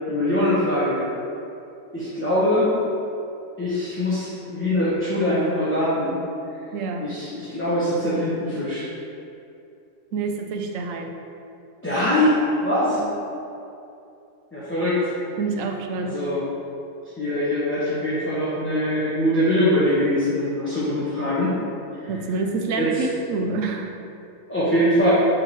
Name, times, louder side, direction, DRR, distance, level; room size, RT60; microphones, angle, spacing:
voice 1, 0.1-1.0 1.9-2.8 3.6-6.2 7.0-8.9 11.8-13.0 14.5-15.1 16.1-16.4 17.2-21.5 22.0-22.1 22.7-23.1 24.5-25.1, left 1 dB, 10° left, -11 dB, 1.0 m, -22 dB
voice 2, 6.7-7.1 10.1-11.1 13.0-13.1 15.4-16.2 22.1-23.9, right 4 dB, 65° right, 3 dB, 0.9 m, -27 dB
7.5 x 4.7 x 3.1 m, 2.7 s
omnidirectional pair, 1.6 m